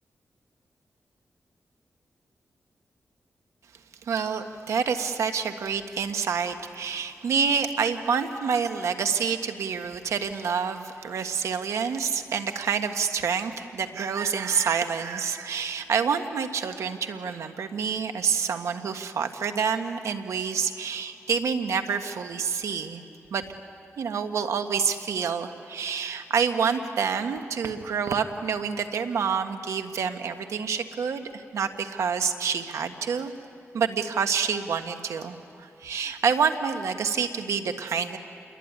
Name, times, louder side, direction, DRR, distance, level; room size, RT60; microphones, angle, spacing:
voice 1, 4.1-23.0 23.3-23.4 24.0-33.3 33.7-38.2, right 6 dB, 90° right, 7 dB, 1.5 m, -27 dB
28.0 x 22.0 x 9.5 m, 2.8 s
cardioid pair, 75°, 5 cm